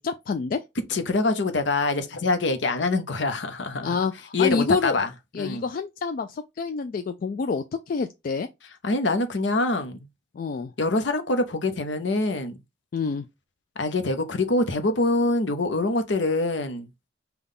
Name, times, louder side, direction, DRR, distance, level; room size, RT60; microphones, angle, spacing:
voice 1, 0.0-0.6 3.8-5.0 5.3-8.5 10.4-10.7 12.9-13.3, left 5 dB, 45° left, 0.3 m, -28 dB
voice 2, 0.9-4.0 4.3-5.6 8.8-10.0 10.8-12.6 13.8-16.9, left 2 dB, 65° left, 0.7 m, -25 dB
5.4 x 2.3 x 3.7 m
head